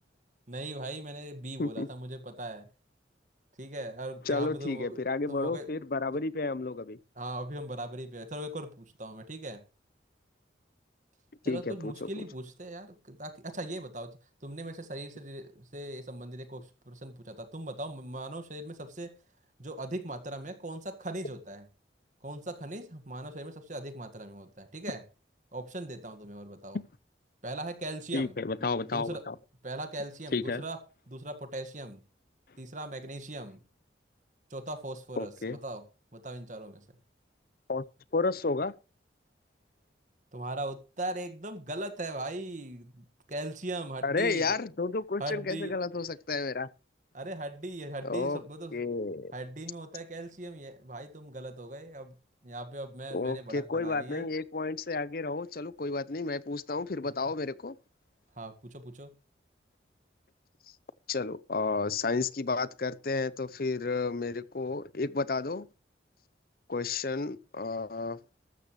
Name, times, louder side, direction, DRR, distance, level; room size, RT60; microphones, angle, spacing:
voice 1, 0.5-2.7 3.6-5.0 5.3-5.7 7.1-9.6 11.4-19.1 19.6-21.7 22.2-25.0 25.5-26.8 27.4-28.3 28.8-29.2 29.6-30.8 31.1-32.0 32.6-33.6 34.5-35.8 36.1-36.8 40.3-44.6 45.2-45.8 47.1-48.8 49.3-52.1 52.4-54.3 58.4-59.1, right 1 dB, 40° right, 1.7 m, -39 dB
voice 2, 4.3-7.0 11.4-12.1 26.7-26.8 28.1-29.4 30.3-30.6 35.2-35.6 37.7-37.9 38.1-38.7 44.0-46.7 48.0-48.4 48.7-49.3 53.1-57.7 61.1-65.7 66.7-68.2, left 3 dB, 50° left, 0.7 m, -31 dB
13.5 x 13.5 x 3.2 m
head